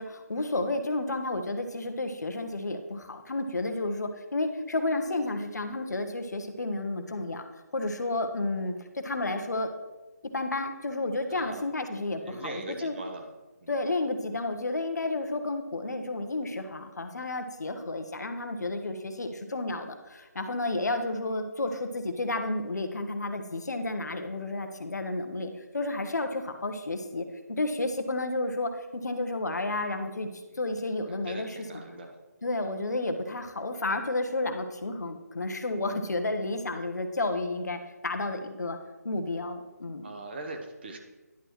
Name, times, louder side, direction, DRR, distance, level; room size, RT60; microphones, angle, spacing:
voice 1, 0.0-7.4 7.7-9.7 10.3-13.0 13.7-30.3 30.5-31.8 32.4-38.8 39.0-40.1, left 2 dB, 75° left, 6 dB, 1.0 m, -31 dB
voice 2, 11.3-11.7 12.2-13.3 13.6-13.7 30.5-30.6 31.1-32.1 40.0-41.0, right 2 dB, 35° right, 4 dB, 1.0 m, -40 dB
10.5 x 6.2 x 3.0 m, 1.2 s
figure-of-eight pair, 160°, 9 cm